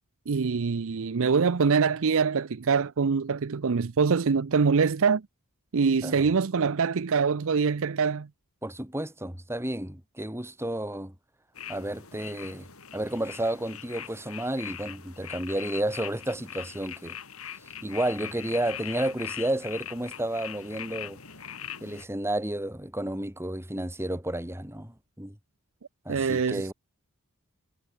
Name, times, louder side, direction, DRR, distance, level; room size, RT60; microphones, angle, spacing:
voice 1, 0.3-5.2 5.7-8.3 26.1-26.6, right 5 dB, 65° right, 0.6 m, -24 dB
voice 2, 8.6-11.1 11.7-17.2 17.8-21.2 21.8-25.4 26.0-26.7, right 1 dB, 10° right, 4.5 m, -31 dB
sound 1, 11.6-22.1, left 9 dB, 65° left, 6.7 m, -41 dB
head